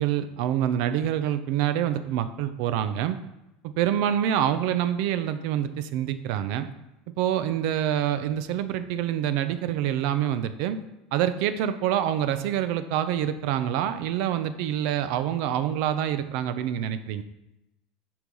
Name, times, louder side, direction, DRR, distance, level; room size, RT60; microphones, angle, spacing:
voice 1, 0.0-3.2 3.8-6.7 7.2-10.8 11.1-17.2, right 10 dB, 55° right, 11 dB, 0.7 m, -26 dB
10.5 x 4.8 x 5.4 m, 0.93 s
cardioid pair, 170°, 0 cm